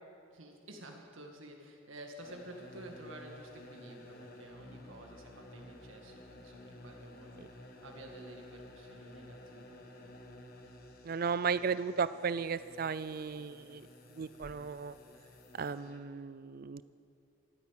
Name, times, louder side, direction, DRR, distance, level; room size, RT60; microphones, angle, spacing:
voice 1, 0.3-10.3, right 1 dB, 80° right, 2 dB, 2.0 m, -51 dB
sound 1, 2.2-16.0, left 1 dB, 50° left, 1.3 m, -53 dB
voice 2, 11.0-13.9 14.2-14.9 15.6-16.8, right 5 dB, 45° right, 15 dB, 0.4 m, -35 dB
13.5 x 8.5 x 9.1 m, 2.5 s
head